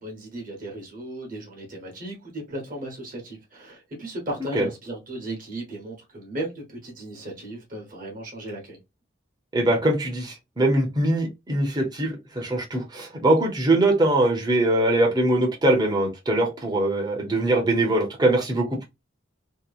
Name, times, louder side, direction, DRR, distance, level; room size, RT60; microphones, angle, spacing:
voice 1, 0.0-8.8, right 1 dB, 45° right, 1.0 m, -36 dB
voice 2, 9.5-18.8, right 1 dB, 20° right, 0.7 m, -22 dB
2.8 x 2.1 x 2.4 m
head